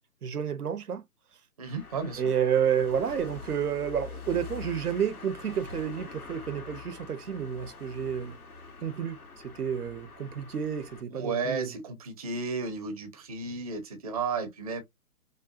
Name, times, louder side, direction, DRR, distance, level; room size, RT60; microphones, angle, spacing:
voice 1, 0.2-1.0 2.2-8.4 8.8-9.2 9.4-11.8, right 8 dB, 80° right, 0.9 m, -30 dB
sound 1, 1.6-11.0, left 5 dB, 75° left, 1.8 m, -45 dB
voice 2, 1.6-2.2 11.1-14.8, right 4 dB, 25° right, 0.6 m, -33 dB
5.2 x 2.2 x 2.6 m
hypercardioid pair, 155°, 45 cm